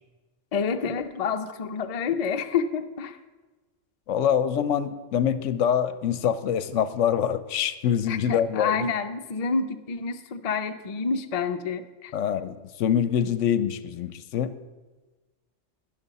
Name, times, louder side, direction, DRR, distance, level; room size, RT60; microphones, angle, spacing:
voice 1, 0.5-3.2 8.1-12.1, left 5 dB, 45° left, 7 dB, 0.5 m, -28 dB
voice 2, 4.1-8.8 12.1-14.5, left 9 dB, 75° left, 13 dB, 0.9 m, -25 dB
12.0 x 10.5 x 4.1 m, 1.2 s
omnidirectional pair, 1.3 m